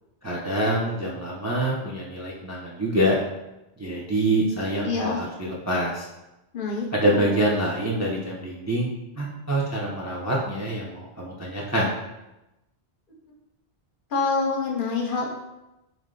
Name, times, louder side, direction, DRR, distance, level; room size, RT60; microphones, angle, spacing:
voice 1, 0.2-3.2 3.8-6.1 6.9-11.9, right 1 dB, 25° right, -4 dB, 0.4 m, -26 dB
voice 2, 4.8-5.2 6.5-7.4 14.1-15.3, left 4 dB, 55° left, 0 dB, 0.8 m, -26 dB
3.7 x 3.2 x 3.7 m, 0.96 s
omnidirectional pair, 1.1 m